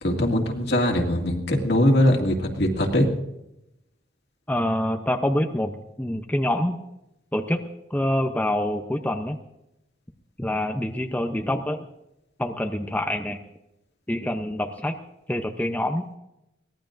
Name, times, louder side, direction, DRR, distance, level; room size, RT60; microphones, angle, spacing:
voice 1, 0.0-3.1, left 1 dB, 60° left, 2 dB, 2.3 m, -21 dB
voice 2, 4.5-6.8 7.3-7.6 7.9-9.4 10.4-11.9 12.4-13.4 14.1-14.9 15.3-16.0, left 1 dB, 10° left, 4 dB, 0.7 m, -26 dB
23.0 x 17.5 x 2.6 m, 0.87 s
head